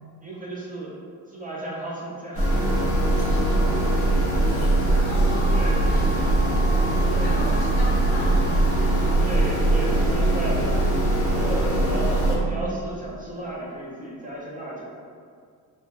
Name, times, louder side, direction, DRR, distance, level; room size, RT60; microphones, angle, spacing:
voice 1, 0.2-0.9 1.3-2.5 2.8-3.3 4.8-5.2 5.5-6.2 7.0-7.4 9.2-14.8, right 1 dB, 20° right, -5 dB, 0.5 m, -34 dB
sound 1, 2.3-12.4, right 2 dB, 35° left, 0.7 m, -21 dB
sound 2, 2.4-11.8, right 2 dB, 80° right, 0.6 m, -42 dB
voice 2, 3.1-4.0 4.4-4.7 5.0-6.3 6.8-8.5 8.8-9.2 11.8-12.1, left 1 dB, 75° left, -3 dB, 0.6 m, -36 dB
2.2 x 2.0 x 2.9 m, 2.1 s
cardioid pair, 90°, 38 cm